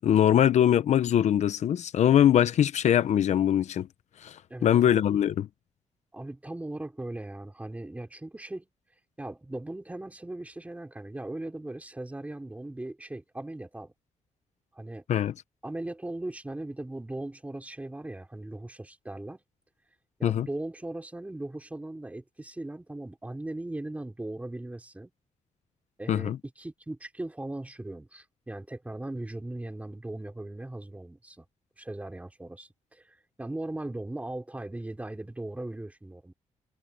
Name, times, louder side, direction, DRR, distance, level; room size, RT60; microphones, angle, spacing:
voice 1, 0.0-3.9 4.2-5.5 15.1-15.3 20.2-20.5 26.1-26.4, left 10 dB, 70° left, 0.8 m, -22 dB
voice 2, 4.5-4.9 6.1-8.7 9.2-13.9 14.7-15.0 15.6-19.4 20.2-25.1 26.0-31.4 31.8-36.3, right 1 dB, 10° right, 3.4 m, -38 dB
cardioid pair, 115°, 12 cm